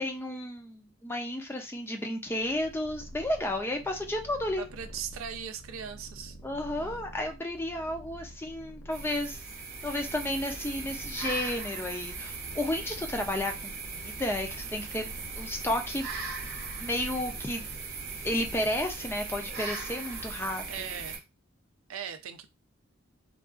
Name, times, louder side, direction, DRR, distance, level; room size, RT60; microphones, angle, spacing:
voice 1, 0.0-4.6 6.4-9.4 9.8-15.1 15.4-16.1 16.8-17.7 18.2-20.6, left 1 dB, 10° left, 0.4 m, -32 dB
Purr, 2.2-19.9, equal, 75° left, 0.6 m, -48 dB
voice 2, 4.5-6.4 6.8-7.0 20.7-21.2 21.9-22.6, right 8 dB, 85° right, 0.4 m, -39 dB
sound 1, 8.9-21.2, right 4 dB, 50° right, 0.7 m, -39 dB
3.6 x 2.3 x 2.4 m
head